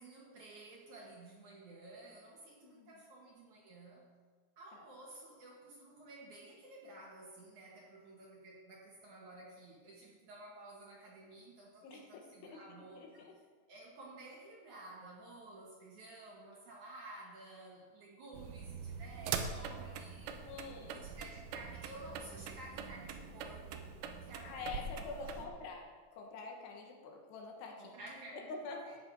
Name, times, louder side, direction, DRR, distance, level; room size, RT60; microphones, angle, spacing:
voice 1, 0.0-4.1 4.6-13.3 13.7-23.9 24.2-25.6 27.8-28.6 28.8-29.0, right 2 dB, 55° right, -2 dB, 2.4 m, -53 dB
voice 2, 11.8-12.6 12.9-13.3 20.4-21.1 24.4-25.9 26.1-27.9 28.5-29.0, left 4 dB, 75° left, 1 dB, 3.4 m, -46 dB
sound 1, 18.3-25.5, right 6 dB, 85° right, 3.1 m, -43 dB
14.0 x 9.1 x 4.7 m, 1.5 s
omnidirectional pair, 4.9 m